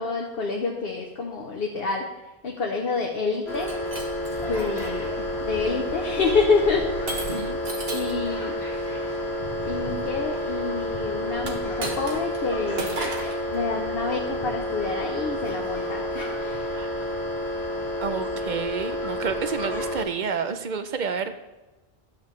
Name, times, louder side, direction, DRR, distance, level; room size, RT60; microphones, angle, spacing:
voice 1, 0.0-2.1 2.4-3.7 4.4-6.9 7.3-7.5 7.9-8.8 9.6-13.1 13.5-16.7, left 4 dB, 65° left, 0 dB, 1.1 m, -28 dB
sound 1, 3.5-20.0, left 1 dB, 85° left, 2.0 m, -30 dB
Shatter, 3.5-4.9 5.5-5.9 7.1-8.2 11.4-12.4 12.8-13.4, right 3 dB, 70° right, 1.4 m, -35 dB
voice 2, 7.3-7.6 16.7-17.2 18.0-21.3, right 6 dB, 55° right, 9 dB, 0.7 m, -30 dB
12.0 x 7.6 x 3.1 m, 1.1 s
omnidirectional pair, 1.1 m